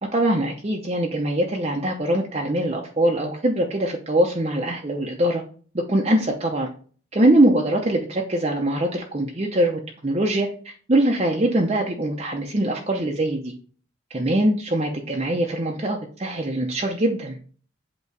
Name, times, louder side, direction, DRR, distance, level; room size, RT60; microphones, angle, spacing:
voice 1, 0.1-5.4 5.7-6.7 7.1-13.5 14.1-17.4, right 1 dB, 30° right, 1 dB, 0.7 m, -22 dB
8.2 x 3.0 x 4.7 m, 0.42 s
head